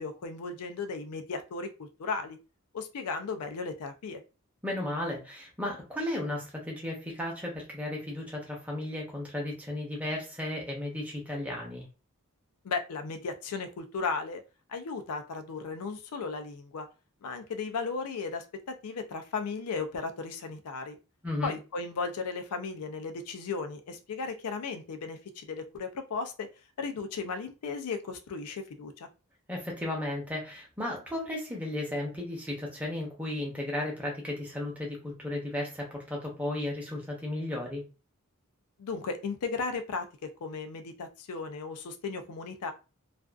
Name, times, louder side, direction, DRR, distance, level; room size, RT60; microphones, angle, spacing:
voice 1, 0.0-2.4 2.7-4.2 12.6-14.4 14.7-16.9 17.2-21.0 21.4-26.5 26.8-29.1 38.8-40.1 40.4-42.7, left 4 dB, 90° left, 7 dB, 0.4 m, -35 dB
voice 2, 4.6-11.9 21.2-21.5 29.5-37.8, left 1 dB, 5° right, -1 dB, 0.7 m, -34 dB
2.5 x 2.3 x 2.3 m, 0.30 s
head